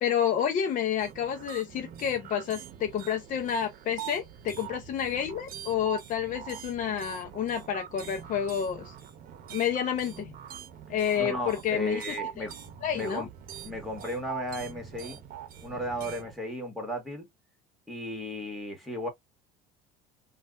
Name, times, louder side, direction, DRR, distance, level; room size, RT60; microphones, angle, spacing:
voice 1, 0.0-8.9 9.5-10.3 10.9-12.0 12.4-12.5 12.8-13.3, left 8 dB, 45° left, 0.7 m, -29 dB
sound 1, 1.0-16.4, right 10 dB, 50° right, 0.8 m, -43 dB
voice 2, 11.1-12.5 12.9-13.3 13.6-15.2 15.6-17.3 17.9-19.1, equal, ahead, 1.8 m, -35 dB
3.2 x 2.4 x 2.5 m
supercardioid pair, 90°, 19 cm